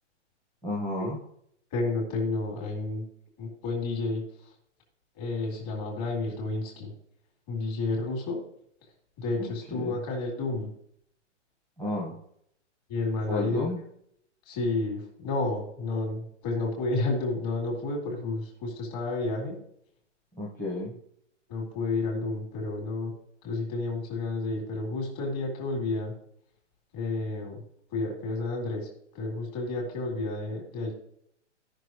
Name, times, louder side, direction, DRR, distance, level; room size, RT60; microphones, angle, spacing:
voice 1, 0.6-1.2 9.4-9.9 11.8-12.2 13.3-13.8 20.3-20.9, left 2 dB, 5° left, -5 dB, 1.3 m, -32 dB
voice 2, 1.7-3.0 3.4-4.5 5.1-6.9 7.5-8.4 9.2-10.7 12.9-13.7 14.4-19.6 21.5-23.1 23.4-26.1 26.9-27.6 27.9-28.9 29.1-30.9, left 3 dB, 30° left, -1 dB, 3.7 m, -31 dB
16.5 x 6.1 x 3.2 m, 0.70 s
hypercardioid pair, 160°, 37 cm